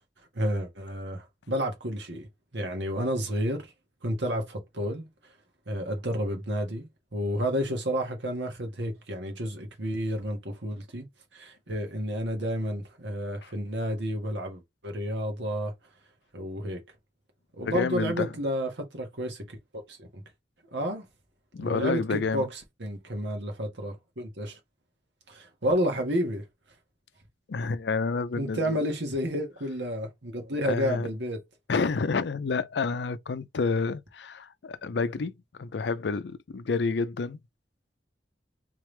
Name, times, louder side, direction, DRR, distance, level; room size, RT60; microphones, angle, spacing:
voice 1, 0.3-2.3 2.5-3.7 4.0-5.1 5.7-11.1 11.3-15.7 16.3-16.8 17.5-20.2 20.7-21.0 21.6-24.6 25.3-26.4 28.4-31.4, equal, 80° right, 1.5 m, -31 dB
voice 2, 17.6-18.3 21.5-22.5 27.5-28.9 30.6-31.1 31.7-35.3 35.6-37.4, left 4 dB, 70° left, 0.5 m, -29 dB
3.5 x 3.4 x 3.2 m
head